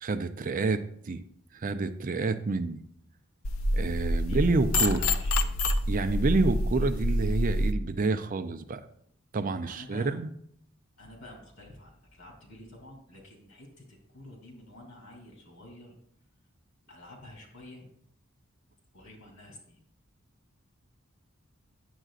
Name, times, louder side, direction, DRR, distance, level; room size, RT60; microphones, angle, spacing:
voice 1, 0.0-1.2 1.5-2.8 3.7-5.1 5.9-8.9 9.3-10.3, right 3 dB, 40° right, 10 dB, 0.5 m, -28 dB
sound 1, 3.4-7.7, left 1 dB, 80° left, 0.6 m, -27 dB
voice 2, 4.2-5.6 9.6-10.2 11.0-15.9 16.9-17.9 18.9-19.8, left 1 dB, 65° left, 0 dB, 2.7 m, -49 dB
9.9 x 7.8 x 2.4 m, 0.65 s
head